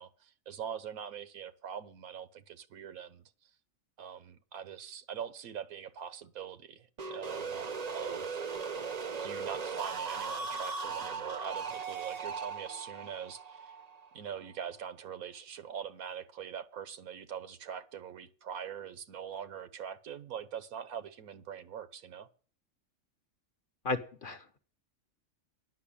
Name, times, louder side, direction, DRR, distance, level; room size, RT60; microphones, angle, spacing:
voice 1, 0.0-3.2 4.0-7.6 7.9-8.4 9.2-13.7 14.1-22.3, right 8 dB, 90° right, 1.4 m, -43 dB
sound 1, 7.0-14.7, right 5 dB, 40° right, 0.6 m, -38 dB
voice 2, 23.8-24.6, left 3 dB, 45° left, 0.9 m, -35 dB
10.0 x 6.0 x 8.6 m
omnidirectional pair, 1.5 m